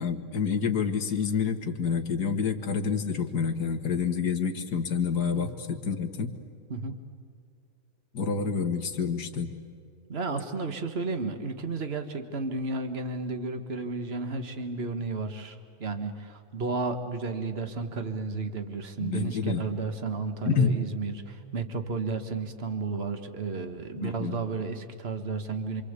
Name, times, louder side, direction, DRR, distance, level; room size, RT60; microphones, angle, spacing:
voice 1, 0.0-6.3 8.1-9.5 19.0-19.7 20.4-20.7 24.0-24.4, left 6 dB, 40° left, 5 dB, 1.6 m, -28 dB
voice 2, 10.1-25.8, right 3 dB, 50° right, 7 dB, 0.7 m, -33 dB
27.5 x 25.5 x 8.3 m, 2.2 s
omnidirectional pair, 3.8 m